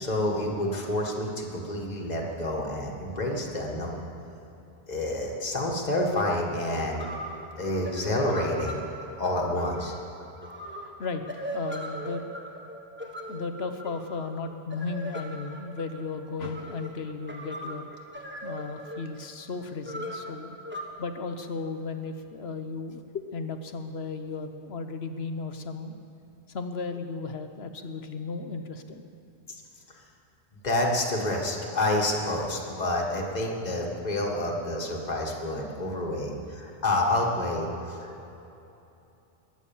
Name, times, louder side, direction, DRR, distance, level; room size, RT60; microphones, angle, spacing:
voice 1, 0.0-4.0 4.9-7.1 7.6-8.8 9.2-9.9 30.6-38.3, left 1 dB, 40° left, -1 dB, 1.9 m, -28 dB
sound 1, 6.9-20.8, equal, 10° right, 1.5 m, -39 dB
voice 2, 10.8-12.3 13.3-17.9 18.4-20.6 21.0-25.9 26.5-29.1, left 4 dB, 75° left, 8 dB, 1.2 m, -35 dB
22.0 x 9.1 x 7.2 m, 2.9 s
omnidirectional pair, 1.1 m